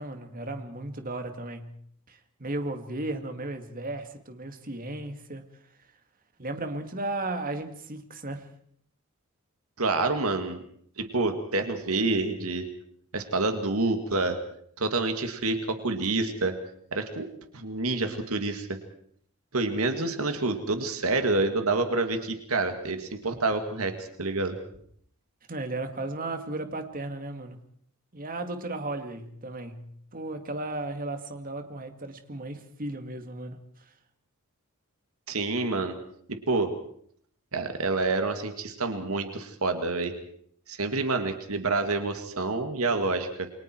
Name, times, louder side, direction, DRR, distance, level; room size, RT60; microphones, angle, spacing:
voice 1, 0.0-1.8 2.1-5.4 6.4-8.5 25.5-27.6 28.1-33.6, right 2 dB, 40° right, 7 dB, 2.2 m, -35 dB
voice 2, 9.8-10.6 11.0-12.7 13.1-14.4 14.8-16.5 16.9-17.3 17.5-18.8 19.5-24.6 35.3-36.0 36.3-36.7 37.5-40.1 40.7-43.5, right 3 dB, 75° right, 7 dB, 2.3 m, -28 dB
28.5 x 23.5 x 4.7 m, 0.64 s
head